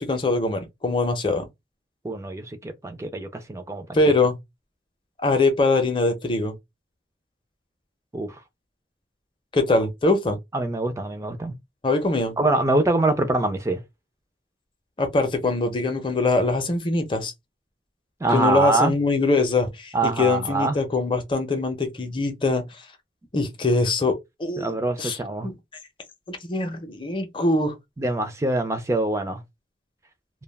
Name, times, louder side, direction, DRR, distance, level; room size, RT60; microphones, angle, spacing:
voice 1, 0.0-1.5 3.9-4.4 5.2-6.5 9.5-10.4 11.8-12.4 15.0-17.3 18.3-22.6 23.3-24.7 25.0-25.5 26.3-27.8, left 2 dB, 25° left, 0.6 m, -23 dB
voice 2, 2.0-4.0 8.1-8.4 10.5-11.6 12.4-13.8 18.2-18.9 19.9-20.8 24.6-25.5 28.0-29.4, right 2 dB, 15° right, 0.3 m, -24 dB
2.2 x 2.2 x 3.3 m
head